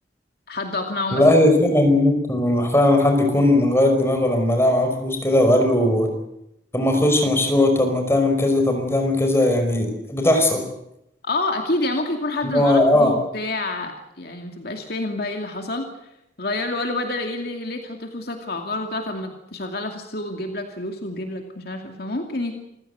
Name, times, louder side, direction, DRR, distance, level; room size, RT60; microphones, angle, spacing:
voice 1, 0.5-1.3 1.7-1.8 11.2-15.9 16.4-22.5, left 2 dB, 55° left, 3 dB, 2.5 m, -28 dB
voice 2, 1.1-6.1 6.7-10.6 12.4-13.1, left 1 dB, 15° left, 4 dB, 5.3 m, -18 dB
28.0 x 16.0 x 8.1 m, 0.82 s
head